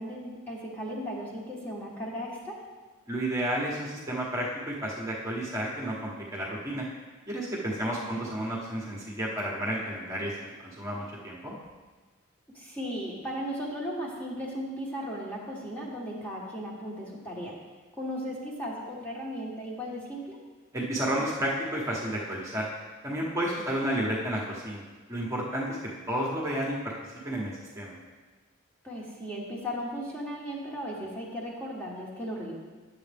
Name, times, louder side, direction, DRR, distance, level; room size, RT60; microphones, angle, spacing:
voice 1, 0.0-2.6 8.0-8.1 12.5-17.6 17.9-20.4 28.8-32.5, equal, 10° left, -4 dB, 1.2 m, -36 dB
voice 2, 3.1-6.9 7.3-11.6 20.7-22.7 23.0-24.8 25.1-25.8 26.1-26.9 27.2-27.9, right 1 dB, 15° right, -4 dB, 1.1 m, -31 dB
10.0 x 7.4 x 3.5 m, 1.3 s
head